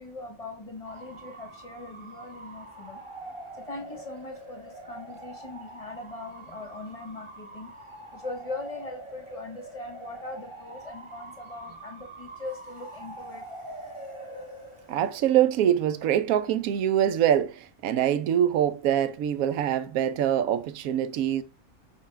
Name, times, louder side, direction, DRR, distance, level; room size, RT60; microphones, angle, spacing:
voice 1, 0.0-3.0 3.5-7.7 8.1-13.4, left 2 dB, 25° left, 1.6 m, -40 dB
Bark / Motor vehicle (road) / Siren, 0.8-17.1, right 1 dB, 20° right, 1.5 m, -45 dB
voice 2, 14.9-21.4, right 10 dB, 85° right, 1.1 m, -24 dB
6.0 x 5.6 x 3.3 m
omnidirectional pair, 1.4 m